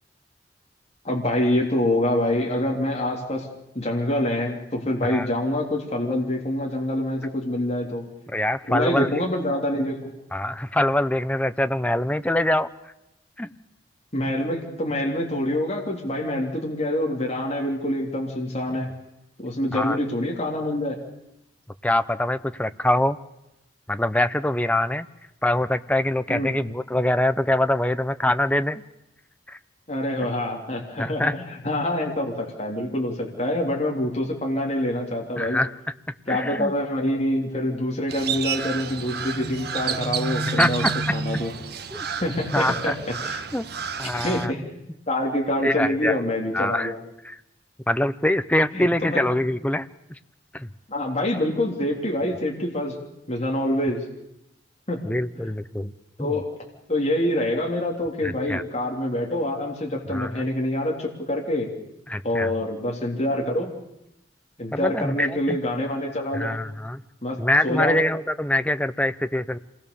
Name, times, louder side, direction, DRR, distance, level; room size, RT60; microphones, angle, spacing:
voice 1, 1.0-3.5 3.8-8.0 8.7-10.1 14.1-18.9 19.4-21.0 26.3-26.5 29.9-35.6 36.3-40.8 41.1-41.5 42.2-43.6 44.0-44.7 45.1-47.0 48.7-49.2 50.9-53.0 53.3-54.0 54.9-55.0 56.2-56.5 56.9-61.7 62.2-63.7 64.6-66.6 67.2-68.0, left 1 dB, 35° left, -1 dB, 3.5 m, -26 dB
voice 2, 8.3-9.1 10.3-12.7 13.4-13.5 19.7-20.0 21.8-23.2 23.9-25.1 25.4-28.8 29.5-29.6 31.0-31.3 35.4-35.7 36.3-36.7 40.6-40.9 41.9-42.0 42.5-43.0 43.5-43.7 44.0-44.5 45.6-46.1 46.5-46.9 47.2-47.4 47.9-49.9 50.5-50.7 55.0-55.9 56.2-56.3 58.2-58.6 60.1-60.5 62.1-62.5 64.7-65.6 66.3-67.0 67.4-69.6, left 1 dB, 10° left, 11 dB, 0.8 m, -24 dB
Crow, 38.1-44.5, right 5 dB, 60° right, 1.3 m, -30 dB
26.5 x 20.5 x 7.1 m, 0.86 s
head